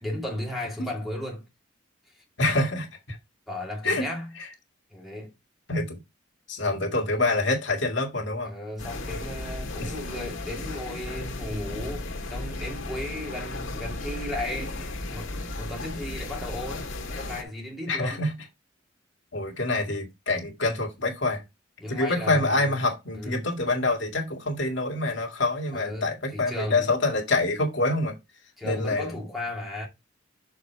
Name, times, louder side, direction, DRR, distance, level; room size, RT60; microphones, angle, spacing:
voice 1, 0.0-1.4 3.5-4.3 4.9-5.3 8.4-14.8 15.1-18.2 21.8-22.7 23.1-23.4 25.7-26.9 28.6-29.9, left 1 dB, ahead, 2.1 m, -35 dB
voice 2, 2.4-3.2 3.8-4.1 5.7-6.0 6.5-8.5 9.8-9.9 17.9-18.3 19.3-21.4 21.9-28.1 28.6-29.2, left 2 dB, 65° left, 2.1 m, -26 dB
sound 1, 8.8-17.4, left 2 dB, 80° left, 1.7 m, -35 dB
6.5 x 5.0 x 4.6 m
head